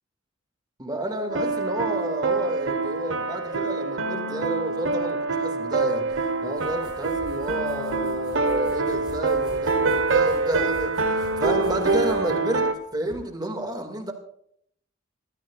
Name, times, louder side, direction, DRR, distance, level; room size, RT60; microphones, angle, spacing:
voice 1, 0.8-14.1, right 1 dB, 20° right, 4 dB, 2.1 m, -31 dB
sound 1, 1.3-12.7, right 3 dB, 70° right, 1.2 m, -25 dB
sound 2, 6.1-13.2, equal, 20° left, 7.8 m, -45 dB
26.5 x 14.0 x 2.4 m, 0.67 s
head